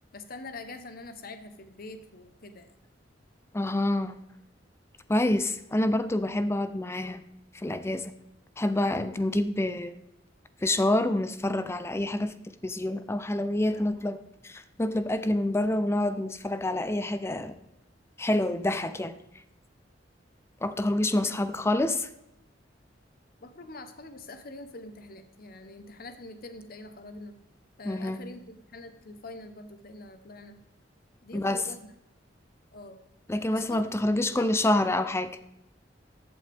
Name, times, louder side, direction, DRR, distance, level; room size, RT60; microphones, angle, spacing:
voice 1, 0.1-2.7 21.2-21.5 23.4-27.4 27.8-30.6 31.2-31.8 32.7-33.0 33.5-34.0 34.3-34.8, left 2 dB, 50° left, 9 dB, 1.0 m, -44 dB
voice 2, 3.5-4.1 5.1-7.2 7.5-8.1 8.6-10.0 10.6-12.4 12.6-17.6 18.2-19.1 20.6-22.1 27.8-28.2 31.3-31.6 33.3-35.4, left 1 dB, 15° left, 12 dB, 0.5 m, -27 dB
14.5 x 8.3 x 3.5 m, 0.86 s
head